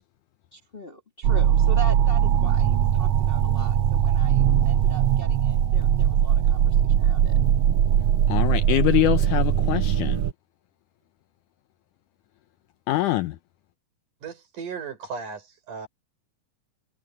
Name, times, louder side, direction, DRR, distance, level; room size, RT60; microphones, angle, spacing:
voice 1, 0.5-7.4, right 3 dB, 15° left, 2.3 m, -40 dB
sound 1, 1.2-10.3, right 10 dB, 80° right, 1.4 m, -20 dB
voice 2, 8.3-10.2 12.9-13.3, left 15 dB, 80° left, 2.0 m, -23 dB
voice 3, 14.2-15.9, right 5 dB, 60° right, 5.7 m, -36 dB
omnidirectional pair, 4.1 m